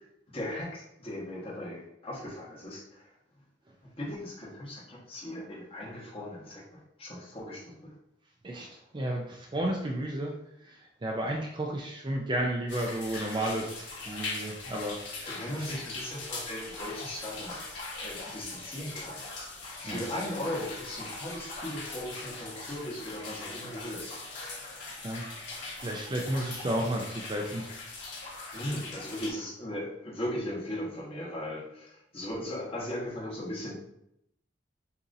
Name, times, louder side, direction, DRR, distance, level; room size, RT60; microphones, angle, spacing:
voice 1, 0.0-3.1 4.0-7.9 8.5-8.7 15.3-17.6 18.0-19.3 19.8-24.2 28.5-33.7, left 1 dB, 30° left, -5 dB, 1.3 m, -38 dB
voice 2, 8.4-10.3 10.6-15.7 19.8-20.0 25.0-27.7, right 1 dB, 25° right, 1 dB, 0.4 m, -33 dB
sound 1, 12.7-29.3, left 3 dB, 60° left, 1.7 m, -41 dB
6.8 x 2.7 x 2.6 m, 0.79 s
head